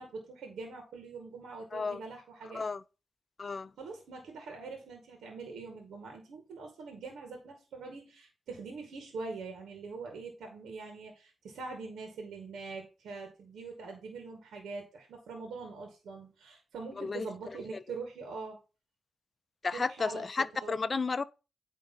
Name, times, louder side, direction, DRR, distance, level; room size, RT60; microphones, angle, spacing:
voice 1, 0.0-2.6 3.8-18.6 19.7-20.8, right 4 dB, 80° right, 2.1 m, -43 dB
voice 2, 3.4-3.7 17.0-17.3 17.7-17.8 19.6-21.2, left 4 dB, 50° left, 0.6 m, -32 dB
9.4 x 3.6 x 5.4 m
supercardioid pair, 40°, 0 cm